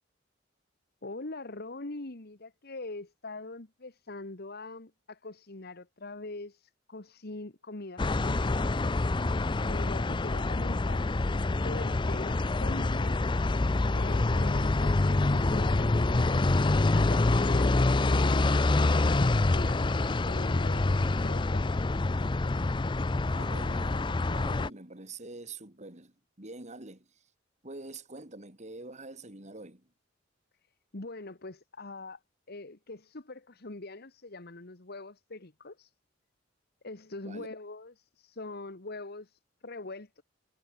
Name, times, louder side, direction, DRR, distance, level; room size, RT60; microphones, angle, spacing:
voice 1, 1.0-8.9 9.7-13.3 13.9-18.5 18.7-19.8 20.2-21.7 30.9-32.2 32.5-35.9 36.8-40.2, left 2 dB, 55° left, 1.6 m, -43 dB
sound 1, 8.0-24.7, left 2 dB, 25° left, 0.5 m, -26 dB
voice 2, 23.3-27.1 27.6-29.9 37.2-37.5, right 2 dB, 40° right, 3.3 m, -45 dB
head